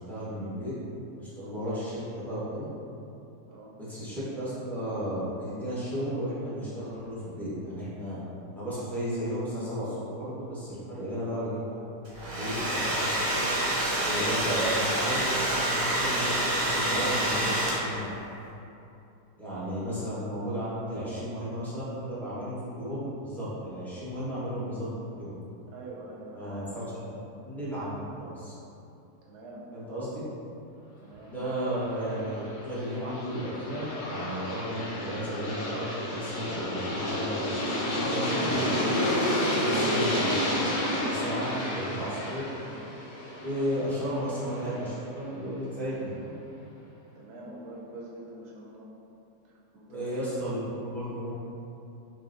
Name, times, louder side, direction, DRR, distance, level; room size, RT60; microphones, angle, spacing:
voice 1, 0.1-0.7 1.2-2.7 3.8-8.2 8.5-11.6 12.2-13.5 14.0-18.1 19.4-24.9 25.2-25.3 26.3-27.1 27.4-28.5 29.7-30.2 31.3-37.5 37.9-39.1 39.6-42.5 43.4-46.3 49.9-51.4, equal, ahead, -12 dB, 0.6 m, -34 dB
Domestic sounds home sounds, 12.1-18.1, right 1 dB, 50° right, 0.9 m, -27 dB
voice 2, 25.7-26.5 29.2-29.6 31.0-31.3 47.1-48.9 49.7-50.1, right 2 dB, 75° right, -4 dB, 1.2 m, -45 dB
Aircraft, 31.9-44.8, left 1 dB, 90° left, 0.4 m, -30 dB
5.6 x 2.3 x 2.5 m, 2.8 s
omnidirectional pair, 1.8 m